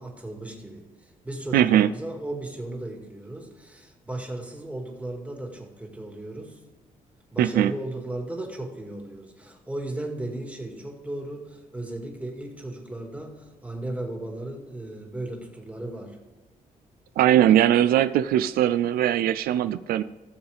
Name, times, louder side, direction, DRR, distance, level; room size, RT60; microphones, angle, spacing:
voice 1, 0.0-6.6 7.3-16.2, right 1 dB, 10° right, 2 dB, 2.2 m, -36 dB
voice 2, 1.5-1.9 7.4-7.7 17.2-20.0, right 11 dB, 85° right, 13 dB, 0.4 m, -20 dB
16.5 x 7.1 x 3.5 m, 1.3 s
cardioid pair, 105°, 15 cm